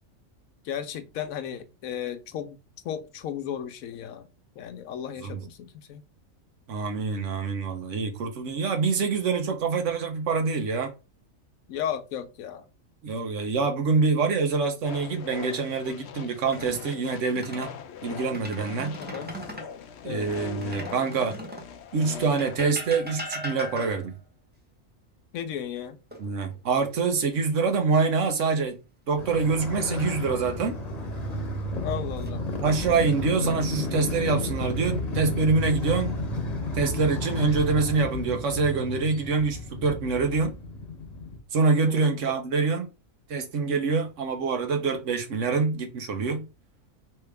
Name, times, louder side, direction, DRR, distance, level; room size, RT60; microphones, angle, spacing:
voice 1, 0.6-2.6 2.8-4.3 4.6-6.0 11.7-12.6 19.0-19.4 20.0-20.3 25.3-26.0 31.8-32.4 41.8-42.2, left 9 dB, 85° left, 1.1 m, -34 dB
voice 2, 6.7-10.9 13.0-17.7 18.0-19.0 20.0-21.3 21.9-24.1 26.2-28.8 29.1-30.8 32.6-36.1 36.7-40.5 41.5-42.9 43.3-46.5, right 4 dB, 65° right, 1.1 m, -25 dB
sound 1, 14.8-22.6, left 6 dB, 65° left, 0.8 m, -41 dB
sound 2, 16.4-17.7 18.2-19.7 20.6-21.7 22.4-24.2 26.1-26.8 27.2-27.4 30.3-30.9 31.7-32.3, equal, 10° right, 0.8 m, -40 dB
Motorcycle, 29.2-41.4, left 1 dB, 35° left, 1.0 m, -32 dB
4.7 x 3.3 x 3.4 m
omnidirectional pair, 1.4 m